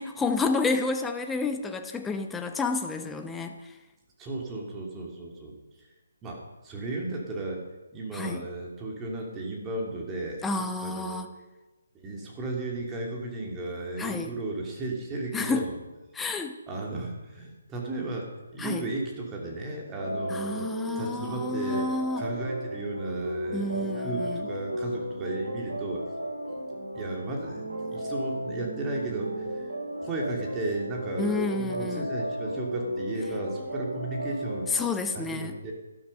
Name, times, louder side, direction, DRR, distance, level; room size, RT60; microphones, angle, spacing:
voice 1, 0.0-3.5 8.1-8.5 10.4-11.3 14.0-14.3 15.3-15.7 16.1-16.6 18.6-18.9 20.3-22.2 23.5-24.5 31.2-32.1 34.7-35.5, left 3 dB, 5° left, 6 dB, 0.9 m, -30 dB
voice 2, 4.2-5.9 6.2-7.6 7.9-11.2 12.0-15.8 16.7-20.7 21.0-21.9 22.2-26.0 26.9-29.7 30.0-34.7 35.1-35.7, right 2 dB, 15° right, -1 dB, 2.7 m, -34 dB
sound 1, 20.0-34.9, equal, 75° right, 4.8 m, -35 dB
12.0 x 12.0 x 5.5 m, 1.1 s
figure-of-eight pair, 145°, 0 cm